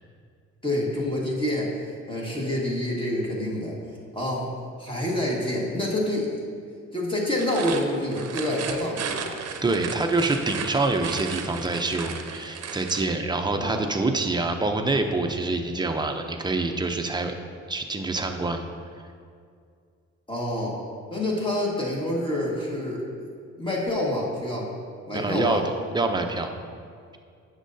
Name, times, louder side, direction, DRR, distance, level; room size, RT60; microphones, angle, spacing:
voice 1, 0.6-3.8 4.1-4.5 4.8-6.3 6.9-9.4 13.5-13.8 20.3-20.8 21.1-23.0 23.6-24.7 25.1-25.6, left 1 dB, 15° left, -4 dB, 1.7 m, -27 dB
sound 1, 7.4-13.1, right 7 dB, 55° right, 0.7 m, -35 dB
voice 2, 9.6-17.3 17.7-18.7 25.1-26.5, right 2 dB, 15° right, 4 dB, 0.6 m, -26 dB
10.0 x 6.6 x 2.7 m, 2.3 s
cardioid pair, 90°, 30 cm